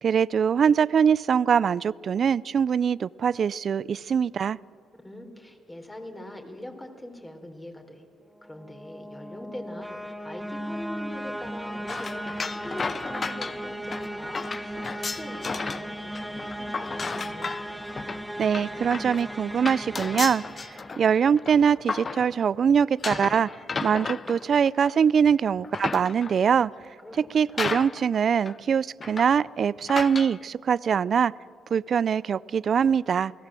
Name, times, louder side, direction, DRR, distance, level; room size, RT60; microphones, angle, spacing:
voice 1, 0.0-4.6 18.4-20.4 21.0-23.5 23.8-26.7 27.2-31.3 31.7-33.3, right 7 dB, 50° right, 21 dB, 0.5 m, -23 dB
voice 2, 5.0-8.0 8.4-17.5 27.0-27.2 27.5-27.7, left 1 dB, 15° left, 4 dB, 3.9 m, -42 dB
sound 1, 8.4-21.4, equal, ahead, 1.8 m, -37 dB
sound 2, 11.9-15.9 16.1-22.6 23.0-25.1 25.5-26.5 27.1-27.2 27.6-28.2 28.5-28.6 29.0-29.4 29.9-30.4, left 4 dB, 35° left, 0.7 m, -34 dB
29.0 x 18.5 x 7.6 m, 2.4 s
cardioid pair, 90°, 0 cm